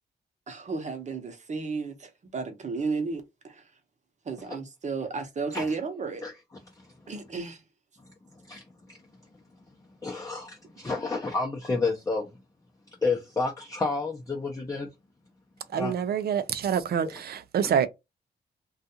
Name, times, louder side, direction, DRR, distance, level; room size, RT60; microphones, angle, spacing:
voice 1, 0.5-3.7 4.2-6.2 7.1-7.6, right 4 dB, 40° right, 0.8 m, -33 dB
voice 2, 10.0-12.3 13.0-14.9 15.7-15.9, left 3 dB, 20° left, 0.6 m, -30 dB
voice 3, 15.7-17.9, right 8 dB, 65° right, 0.4 m, -26 dB
2.4 x 2.3 x 2.7 m
cardioid pair, 85°, 18 cm